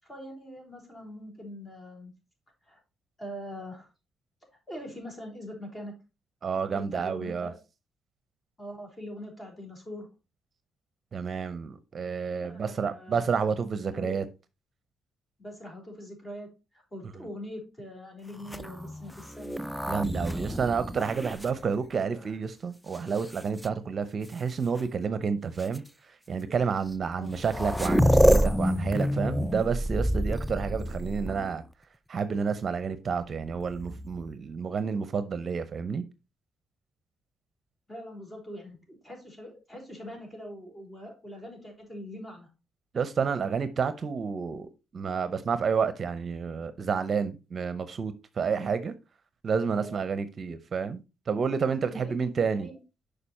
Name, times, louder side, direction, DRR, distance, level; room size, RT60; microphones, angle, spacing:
voice 1, 0.0-2.1 2.6-2.8 3.2-3.9 4.7-5.9 6.7-7.6 8.6-10.1 12.4-13.3 13.9-14.2 15.4-19.6 26.5-26.6 27.2-27.4 37.9-42.5 49.7-50.0 51.9-52.2 52.4-52.8, equal, 25° left, 4.0 m, -43 dB
voice 2, 6.4-7.5 11.1-14.2 17.2-17.3 19.9-31.6 32.1-36.0 42.9-48.9 49.4-52.7, right 6 dB, 45° right, 0.7 m, -30 dB
sound 1, 18.4-22.3 22.9-23.7 24.8-24.9 25.6-25.8 26.9-27.0 27.2-31.7 33.6-34.3, equal, ahead, 0.4 m, -28 dB
6.8 x 5.0 x 4.2 m
cardioid pair, 90°, 0 cm